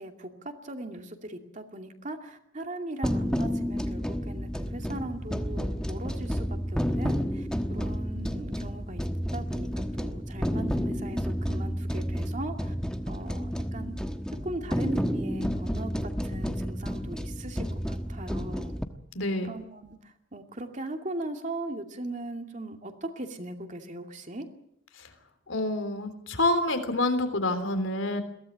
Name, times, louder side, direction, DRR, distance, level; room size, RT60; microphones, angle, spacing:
voice 1, 0.0-9.0 9.3-12.7 13.1-14.0 14.4-18.7 19.4-24.5, right 2 dB, 40° right, 4 dB, 2.5 m, -39 dB
sound 1, 3.0-18.8, equal, 5° left, 1.2 m, -31 dB
voice 2, 19.1-19.5 25.5-28.2, left 2 dB, 80° left, 9 dB, 3.4 m, -27 dB
22.5 x 17.0 x 8.7 m, 0.74 s
head